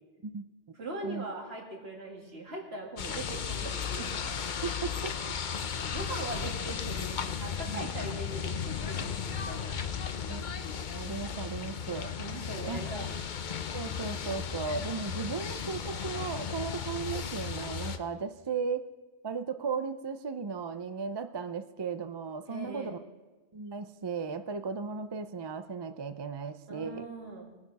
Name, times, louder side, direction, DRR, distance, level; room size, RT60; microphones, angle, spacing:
voice 1, 0.8-4.1 5.7-10.3 12.1-13.1 22.5-22.9 26.7-27.5, right 2 dB, 65° right, 0 dB, 2.6 m, -41 dB
sound 1, 3.0-18.0, left 7 dB, 50° left, 0.8 m, -35 dB
voice 2, 4.6-5.3 7.7-7.9 10.3-10.4 10.9-12.1 12.7-13.1 13.7-18.8 19.2-23.0 23.5-27.0, right 5 dB, 35° right, 10 dB, 0.4 m, -36 dB
20.5 x 9.6 x 4.1 m, 1.2 s
omnidirectional pair, 1.1 m